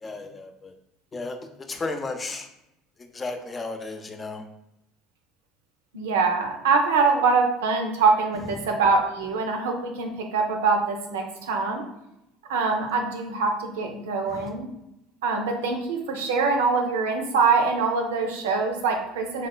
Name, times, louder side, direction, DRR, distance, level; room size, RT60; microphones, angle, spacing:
voice 1, 0.0-0.7 1.1-2.5 3.1-4.4 8.6-8.7 14.3-14.5, left 3 dB, 25° left, 6 dB, 0.5 m, -34 dB
voice 2, 5.9-11.8 12.5-14.7 15.2-19.5, right 4 dB, 90° right, 3 dB, 0.5 m, -24 dB
3.0 x 3.0 x 2.3 m, 0.85 s
hypercardioid pair, 85°, 0 cm